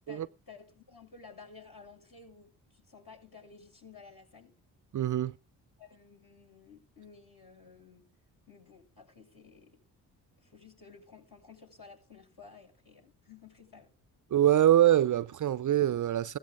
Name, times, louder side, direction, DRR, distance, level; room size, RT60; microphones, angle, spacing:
voice 1, 0.1-4.5 5.8-8.1 8.5-9.8 10.4-13.9, left 5 dB, 50° left, 6.9 m, -54 dB
voice 2, 4.9-5.3 14.3-16.4, right 12 dB, 45° right, 0.6 m, -24 dB
16.0 x 13.5 x 3.8 m
supercardioid pair, 50°, 44 cm